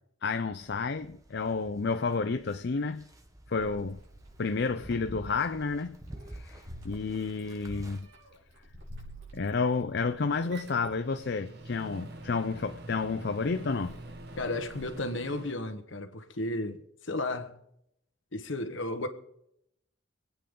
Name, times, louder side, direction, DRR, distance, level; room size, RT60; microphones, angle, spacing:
voice 1, 0.2-3.0 3.5-4.0 4.4-6.0 6.3-8.1 9.3-14.0, left 4 dB, 55° left, 0.5 m, -31 dB
sound 1, 0.6-8.0, right 1 dB, 15° right, 1.3 m, -49 dB
Meow, 3.6-14.9, equal, 70° right, 5.3 m, -51 dB
Microwave oven, 10.4-15.5, right 2 dB, 55° right, 1.5 m, -46 dB
voice 2, 14.4-17.6 18.3-19.1, left 2 dB, 70° left, 1.5 m, -34 dB
26.5 x 9.0 x 3.9 m
head